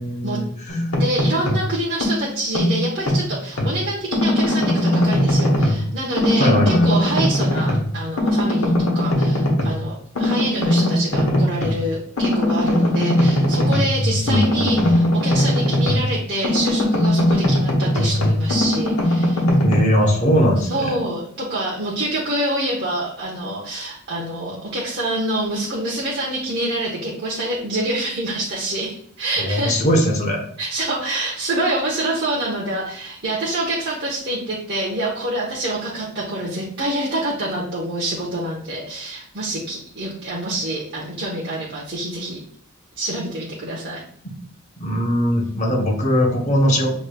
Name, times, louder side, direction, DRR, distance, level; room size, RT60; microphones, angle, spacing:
voice 1, 0.0-0.8 6.4-6.8 14.0-15.0 19.6-21.0 29.4-30.4 44.2-44.3 44.8-46.9, equal, 35° left, 0 dB, 0.7 m, -20 dB
sound 1, 0.7-1.7 2.0-3.7 4.1-5.9 6.2-7.9 8.2-9.8 10.1-11.8 12.2-16.1 16.4-19.8, left 1 dB, 80° left, 1.0 m, -19 dB
voice 2, 1.0-19.4 20.7-29.9 30.6-42.4 43.0-44.0, right 1 dB, 50° right, -5 dB, 0.8 m, -26 dB
6.4 x 3.0 x 2.2 m, 0.63 s
head